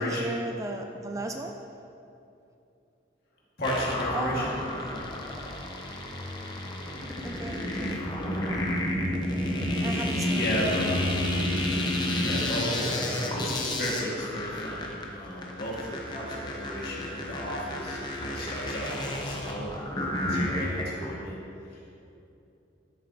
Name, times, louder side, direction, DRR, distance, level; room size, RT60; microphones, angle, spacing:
voice 1, 0.0-1.6 4.1-5.1 7.2-8.0 9.8-10.8 11.5-11.8, right 2 dB, 15° right, 4 dB, 0.3 m, -37 dB
voice 2, 3.6-4.5 10.3-11.1 12.1-21.4, equal, 55° left, -5 dB, 2.1 m, -34 dB
sound 1, 3.6-21.1, left 1 dB, 25° left, 0.9 m, -31 dB
12.5 x 7.0 x 3.0 m, 2.7 s
head